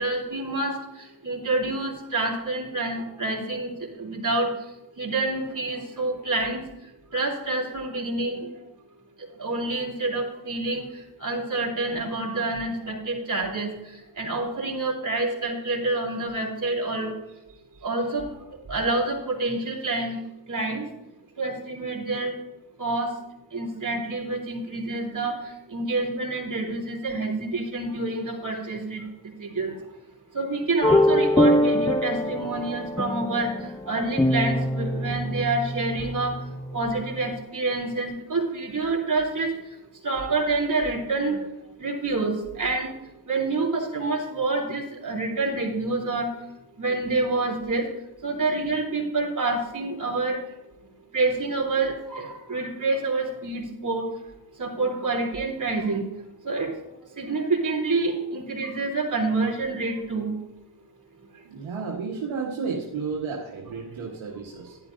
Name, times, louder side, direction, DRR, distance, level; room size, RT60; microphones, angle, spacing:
voice 1, 0.0-4.5 5.0-6.6 7.1-8.5 9.4-10.8 11.2-13.7 14.2-17.1 17.8-18.3 18.7-20.2 20.5-20.8 21.4-22.3 22.8-23.1 23.5-29.8 30.3-33.5 33.8-36.3 36.7-39.5 40.0-41.5 41.8-42.9 43.3-46.3 46.8-47.9 48.2-50.4 51.1-54.1 54.6-56.0 56.4-56.7 57.2-60.3, right 3 dB, 40° right, -1 dB, 3.2 m, -27 dB
sound 1, 30.8-37.4, left 1 dB, 10° left, 0.4 m, -24 dB
voice 2, 61.4-64.8, right 5 dB, 70° right, -2 dB, 1.5 m, -32 dB
11.0 x 10.5 x 2.6 m, 0.94 s
supercardioid pair, 50°, 49 cm